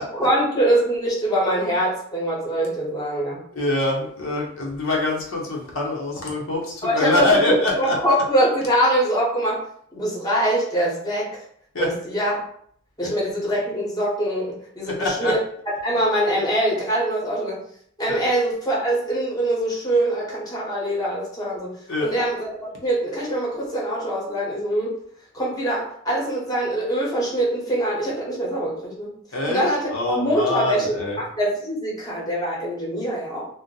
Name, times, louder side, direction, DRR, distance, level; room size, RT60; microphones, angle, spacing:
voice 1, 0.0-3.4 6.8-9.6 9.9-11.4 11.8-12.3 13.0-15.4 15.8-17.6 18.0-21.7 22.0-24.9 25.3-29.1 29.5-33.4, right 1 dB, 20° left, -4 dB, 0.9 m, -23 dB
voice 2, 3.5-8.2 11.7-11.9 13.0-13.1 14.9-15.3 18.1-18.2 21.9-22.1 29.3-31.2, left 2 dB, 65° left, -2 dB, 0.7 m, -24 dB
2.6 x 2.0 x 3.8 m, 0.62 s
head